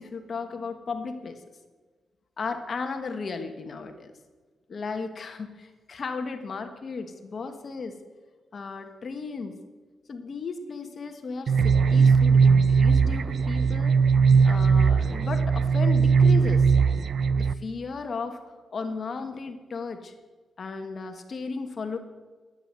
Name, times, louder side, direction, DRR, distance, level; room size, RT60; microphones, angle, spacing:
voice 1, 0.0-1.4 2.4-4.1 4.7-8.0 8.5-9.6 10.1-14.0 14.4-16.7 17.4-18.4 18.7-20.1 20.6-22.0, left 4 dB, 50° left, 6 dB, 1.3 m, -35 dB
sound 1, 11.5-17.5, right 5 dB, 55° right, 0.4 m, -19 dB
12.5 x 9.2 x 7.8 m, 1.4 s
cardioid pair, 85°, 0 cm